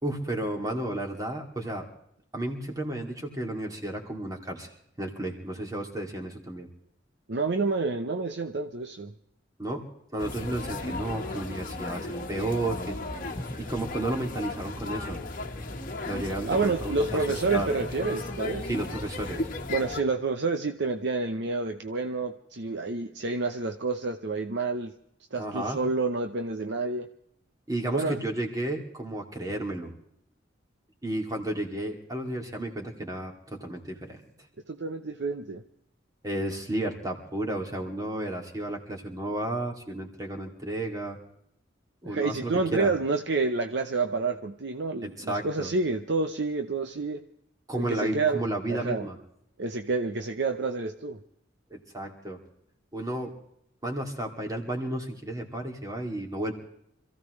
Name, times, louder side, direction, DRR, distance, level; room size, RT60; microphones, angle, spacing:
voice 1, 0.0-1.9 2.3-4.7 5.0-6.7 9.6-9.9 10.1-13.0 13.6-15.2 16.0-17.2 17.5-17.7 18.6-19.4 25.4-25.8 27.7-29.9 31.0-34.2 36.2-41.2 42.0-42.9 45.0-45.7 47.7-49.2 51.7-52.4 52.9-53.3 53.8-56.5, right 1 dB, 20° right, 1 dB, 2.5 m, -32 dB
voice 2, 7.3-9.1 16.5-18.7 19.7-24.9 25.3-27.1 27.9-28.2 34.7-35.6 42.1-47.2 47.8-49.1 49.6-51.2, right 3 dB, 60° right, 6 dB, 0.8 m, -29 dB
sound 1, 10.2-20.0, left 2 dB, 45° left, 1.4 m, -35 dB
26.5 x 15.5 x 3.2 m, 0.73 s
head